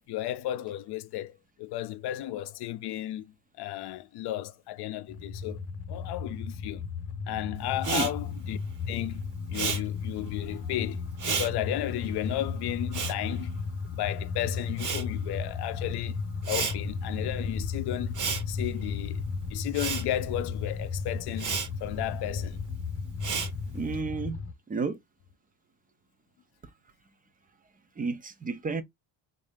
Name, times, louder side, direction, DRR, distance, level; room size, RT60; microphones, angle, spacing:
voice 1, 0.0-6.8 7.3-8.6 8.9-13.6 13.9-16.2 16.5-18.2 18.5-19.2 19.5-22.6, left 14 dB, 55° left, 0.6 m, -34 dB
sound 1, 5.1-24.5, left 5 dB, 30° left, 0.9 m, -35 dB
Respiratory sounds, 7.8-14.2 14.5-24.0, right 6 dB, 40° right, 0.9 m, -35 dB
voice 2, 23.7-24.4 24.7-25.0 28.0-28.8, right 4 dB, 20° right, 0.5 m, -31 dB
3.6 x 2.7 x 3.5 m
cardioid pair, 130°, 47 cm